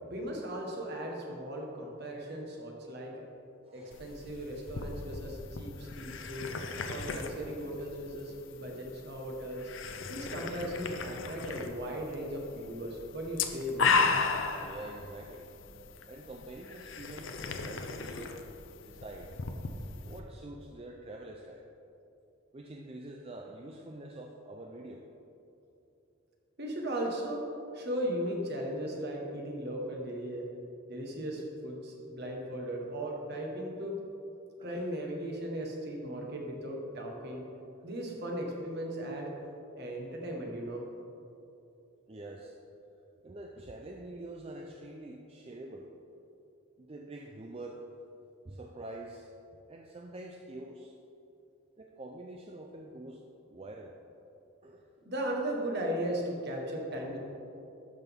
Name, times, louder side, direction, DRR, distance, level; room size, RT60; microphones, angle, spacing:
voice 1, 0.0-3.1 3.7-6.5 6.9-9.7 10.1-14.0 26.6-27.4 27.7-30.4 30.9-34.0 34.6-37.4 37.8-39.3 39.8-40.8 55.0-57.2, right 1 dB, 50° right, 0 dB, 1.4 m, -37 dB
voice 2, 3.7-4.0 14.6-15.5 16.1-18.4 18.8-19.3 20.0-21.6 22.5-25.0 34.6-34.9 42.1-42.6 43.2-45.9 46.8-47.8 48.4-49.3 49.7-50.9 51.8-53.2 53.5-53.9 54.6-54.8, right 2 dB, 30° right, 1 dB, 0.4 m, -46 dB
sound 1, 3.9-20.2, left 4 dB, 60° left, 0.6 m, -36 dB
12.0 x 6.1 x 3.6 m, 2.8 s
head